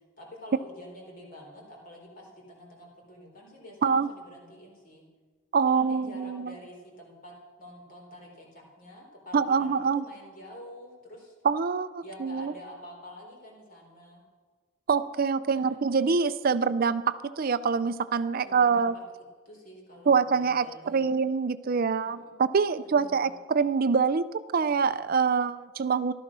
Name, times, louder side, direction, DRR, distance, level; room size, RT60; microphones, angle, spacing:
voice 1, 0.2-5.0 5.6-7.3 7.6-11.3 12.0-14.2 15.5-15.8 18.4-21.1 22.1-22.4 22.8-23.4, equal, 45° left, -1 dB, 4.1 m, -48 dB
voice 2, 5.5-6.5 9.3-10.0 11.4-12.5 14.9-18.9 20.1-24.3 24.5-26.1, right 5 dB, 50° right, 14 dB, 0.5 m, -25 dB
15.0 x 12.5 x 6.2 m, 1.4 s
head